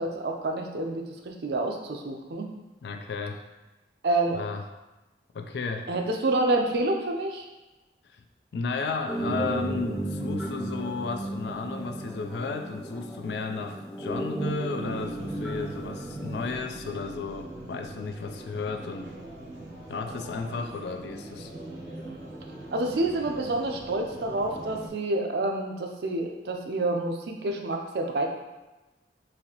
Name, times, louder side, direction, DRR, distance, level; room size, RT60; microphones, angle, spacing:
voice 1, 0.0-2.5 4.0-4.4 5.9-7.4 22.7-28.4, right 2 dB, 60° right, 2 dB, 0.4 m, -28 dB
voice 2, 2.8-3.4 4.3-4.7 5.3-5.9 8.5-19.1 19.9-21.5, left 4 dB, 70° left, 5 dB, 0.3 m, -33 dB
sound 1, 9.1-16.6, right 2 dB, ahead, 0.5 m, -34 dB
sound 2, 14.9-24.9, right 1 dB, 85° right, 0.9 m, -42 dB
4.1 x 2.7 x 2.8 m, 1.1 s
head